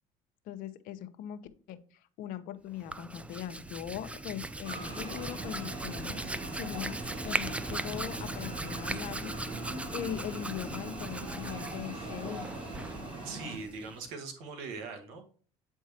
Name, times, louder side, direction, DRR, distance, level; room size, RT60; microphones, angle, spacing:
voice 1, 0.5-1.4 1.7-6.2 6.5-7.0 7.2-12.5, left 10 dB, 65° left, 11 dB, 0.8 m, -40 dB
Hands, 2.7-14.1, right 2 dB, 10° right, 0.5 m, -39 dB
sound 1, 4.6-13.6, right 2 dB, 35° right, 3.1 m, -42 dB
voice 2, 13.2-15.3, right 4 dB, 75° right, 5 dB, 1.7 m, -41 dB
8.3 x 4.6 x 2.9 m, 0.42 s
hypercardioid pair, 80°, 16 cm